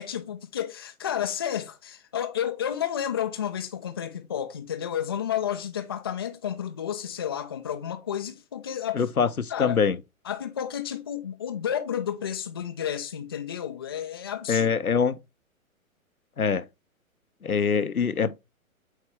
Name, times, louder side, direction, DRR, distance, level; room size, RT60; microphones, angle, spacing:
voice 1, 0.0-9.1 9.5-9.8 10.3-14.7, left 9 dB, 20° left, 0.4 m, -31 dB
voice 2, 8.9-10.0 14.5-15.2 16.4-16.7 17.4-18.4, left 6 dB, 85° left, 0.7 m, -24 dB
8.1 x 4.5 x 3.3 m
figure-of-eight pair, 120°, 42 cm